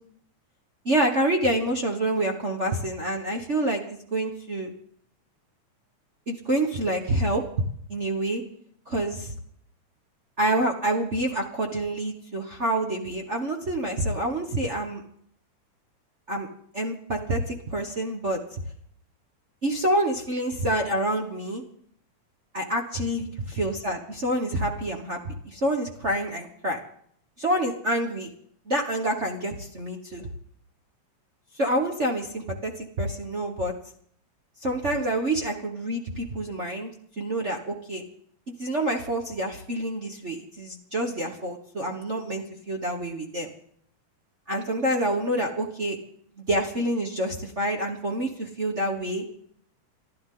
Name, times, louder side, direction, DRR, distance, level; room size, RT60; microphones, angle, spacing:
voice 1, 0.8-4.7 6.3-7.4 7.9-8.4 8.9-9.3 10.4-15.0 16.3-16.5 16.7-18.4 19.6-21.6 22.5-23.3 23.6-26.8 27.4-28.3 28.7-30.3 31.5-33.7 34.6-36.9 37.2-38.0 38.6-43.5 44.5-46.0 46.4-49.2, right 1 dB, 50° right, 0 dB, 0.8 m, -27 dB
28.5 x 11.5 x 3.9 m, 0.66 s
omnidirectional pair, 3.5 m